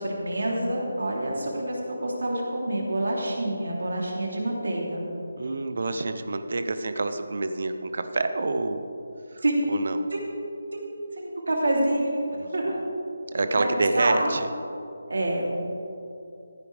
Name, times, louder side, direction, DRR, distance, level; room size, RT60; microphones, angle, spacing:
voice 1, 0.0-5.0 9.4-9.7 10.1-10.3 10.7-12.2 12.5-12.7 13.6-13.7 13.9-14.3 15.1-15.4, right 1 dB, 85° right, -2 dB, 3.2 m, -27 dB
voice 2, 5.4-8.9 9.3-9.4 9.7-10.1 12.3-12.8 13.3-14.5, right 3 dB, 40° right, 9 dB, 0.7 m, -28 dB
15.0 x 11.0 x 3.5 m, 2.8 s
figure-of-eight pair, 180°, 0 cm